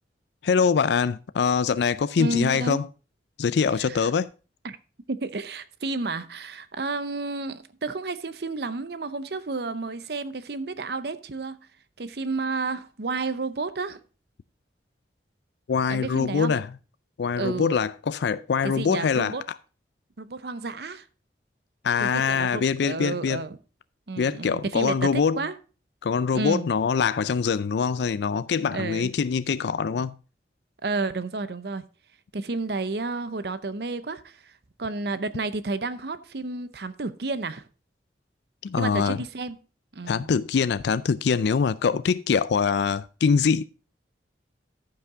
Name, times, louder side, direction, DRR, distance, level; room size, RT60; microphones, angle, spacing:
voice 1, 0.4-2.9 3.4-4.3 15.7-16.7 17.2-19.3 21.8-23.4 24.2-25.4 26.0-30.1 38.6-39.2 40.1-43.6, left 6 dB, 70° left, 0.4 m, -24 dB
voice 2, 2.2-2.8 3.8-4.1 4.6-4.8 5.1-11.6 12.0-14.0 15.9-16.6 17.3-17.8 18.6-19.4 20.2-21.1 22.0-23.6 24.1-25.6 26.3-26.7 28.7-29.1 30.8-31.8 32.3-34.5 34.8-37.7 38.8-39.6 39.9-40.3, right 3 dB, 60° right, 0.7 m, -31 dB
14.0 x 5.9 x 3.7 m
head